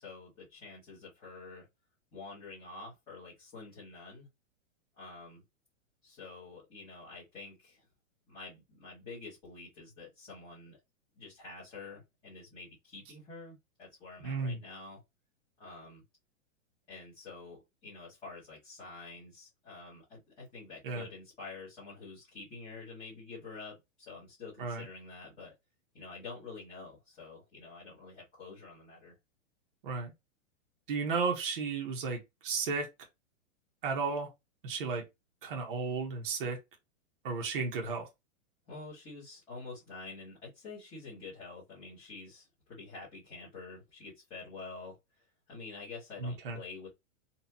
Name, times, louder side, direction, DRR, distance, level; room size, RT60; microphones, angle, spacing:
voice 1, 0.0-1.7 2.1-4.3 5.0-5.4 6.0-7.8 8.3-10.8 11.2-15.0 15.6-16.0 16.9-25.5 25.9-29.1 38.7-46.9, left 4 dB, 15° left, 1.4 m, -48 dB
voice 2, 14.2-14.6 20.8-21.0 24.6-24.8 29.8-30.1 30.9-32.9 33.8-34.3 34.6-35.0 35.4-36.6 37.2-38.1 46.2-46.6, right 4 dB, 45° right, 1.1 m, -33 dB
4.2 x 2.6 x 2.8 m
supercardioid pair, 180°, 39 cm